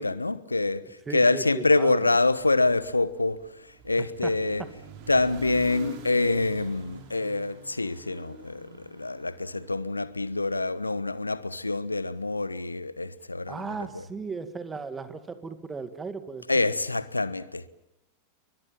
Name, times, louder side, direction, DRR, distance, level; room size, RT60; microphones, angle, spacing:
voice 1, 0.0-4.6 5.1-13.7 16.5-17.7, left 3 dB, 80° left, 1.2 m, -26 dB
voice 2, 1.1-2.1 4.2-4.3 4.6-4.7 13.5-16.7, right 4 dB, 15° right, 2.1 m, -36 dB
sound 1, 2.3-10.6, right 4 dB, 45° right, 5.1 m, -46 dB
29.5 x 23.5 x 7.5 m
figure-of-eight pair, 90°, 0 cm